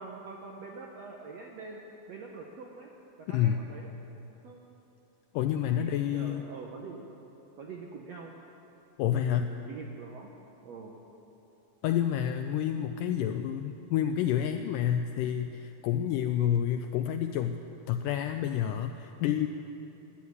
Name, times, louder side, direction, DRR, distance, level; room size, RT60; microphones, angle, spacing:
voice 1, 0.0-1.8 2.1-2.9 3.2-3.9 4.4-4.6 5.7-7.1 7.6-8.3 9.1-10.3 10.6-11.0, right 4 dB, 70° right, 0 dB, 1.5 m, -44 dB
voice 2, 3.3-3.6 5.3-6.4 9.0-9.5 11.8-17.6 17.9-19.5, left 10 dB, 85° left, 7 dB, 1.9 m, -29 dB
13.5 x 10.0 x 9.5 m, 3.0 s
omnidirectional pair, 4.3 m